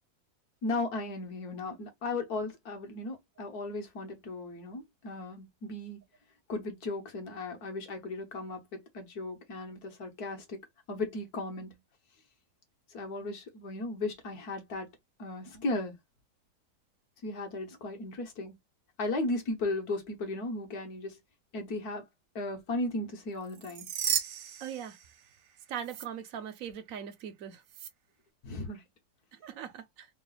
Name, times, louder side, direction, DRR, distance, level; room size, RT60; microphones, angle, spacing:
voice 1, 0.6-6.0 6.5-10.6 10.9-11.8 12.9-14.9 15.2-16.0 17.2-18.5 19.0-21.2 21.5-22.1 22.4-23.9 28.4-28.8, left 2 dB, 65° left, 1.7 m, -36 dB
sound 1, 23.5-25.5 25.8-26.1 27.7-27.9, right 10 dB, 75° right, 1.3 m, -35 dB
voice 2, 24.6-25.0 25.7-27.6 29.4-30.1, right 8 dB, 60° right, 1.0 m, -40 dB
3.8 x 2.4 x 3.9 m
omnidirectional pair, 1.8 m